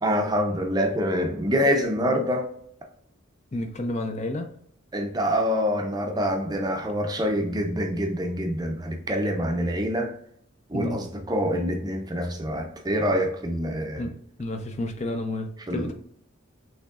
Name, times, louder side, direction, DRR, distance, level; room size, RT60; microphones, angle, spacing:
voice 1, 0.0-2.5 4.9-10.1 10.7-14.1 15.7-15.9, equal, 20° right, 0.5 m, -26 dB
voice 2, 3.5-4.5 10.7-11.0 14.0-14.1 14.4-15.9, left 1 dB, 35° left, 0.4 m, -30 dB
6.3 x 3.0 x 2.4 m
head